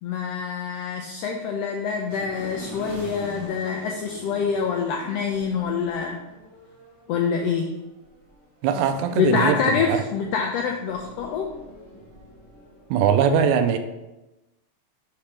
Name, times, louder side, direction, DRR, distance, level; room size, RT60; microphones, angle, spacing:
voice 1, 0.0-6.2 7.1-7.7 9.1-11.5, left 6 dB, 90° left, 2 dB, 1.4 m, -26 dB
sound 1, 2.1-13.1, equal, 45° right, 0.4 m, -44 dB
voice 2, 8.6-10.0 12.9-13.8, right 7 dB, 85° right, 9 dB, 1.9 m, -21 dB
5.9 x 3.3 x 5.8 m, 1.0 s
omnidirectional pair, 3.4 m